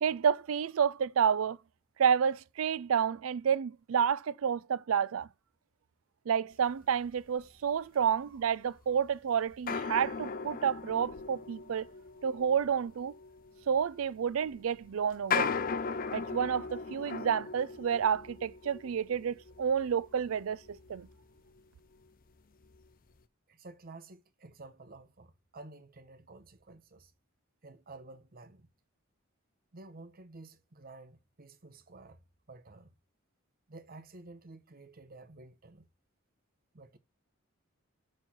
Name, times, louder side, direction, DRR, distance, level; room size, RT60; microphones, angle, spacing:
voice 1, 0.0-1.6 2.0-5.3 6.3-11.9 12.2-13.1 13.7-15.5 16.1-21.1, right 7 dB, 80° right, 0.4 m, -30 dB
sound 1, 8.4-8.5 9.6-21.6 22.0-22.1 22.6-22.8, left 5 dB, 45° left, 0.6 m, -38 dB
voice 2, 23.5-27.1 27.6-28.7 29.7-32.2 32.5-32.9 33.7-35.9 36.7-37.0, right 2 dB, 45° right, 0.9 m, -51 dB
6.0 x 4.5 x 5.5 m
head